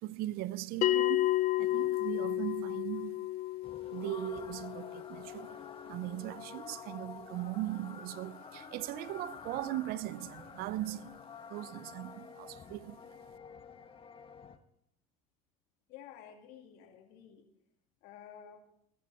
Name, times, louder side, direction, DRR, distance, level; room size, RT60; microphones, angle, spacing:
voice 1, 0.0-3.3 3.9-11.1 11.5-13.0, right 15 dB, 65° right, 0.7 m, -39 dB
Bell, 0.8-5.9, left 15 dB, 50° left, 0.6 m, -32 dB
sound 1, 3.6-14.6, left 6 dB, 35° left, 1.4 m, -49 dB
voice 2, 15.9-17.5 18.0-18.6, left 9 dB, 70° left, 2.7 m, -52 dB
15.5 x 13.5 x 4.3 m
supercardioid pair, 95°, 17 cm